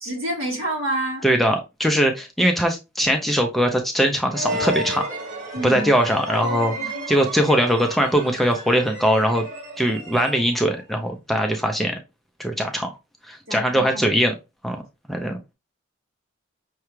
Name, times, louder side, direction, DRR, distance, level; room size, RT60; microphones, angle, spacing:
voice 1, 0.0-1.2 5.5-5.9 6.8-6.9 13.5-14.1, right 1 dB, 75° right, 1.5 m, -28 dB
voice 2, 1.2-5.1 5.6-9.5 9.8-12.0 12.4-12.9 13.3-14.3 14.6-14.8 15.1-15.4, equal, ahead, 0.4 m, -21 dB
sound 1, 4.3-10.8, right 1 dB, 40° right, 1.4 m, -32 dB
5.7 x 2.2 x 3.0 m
head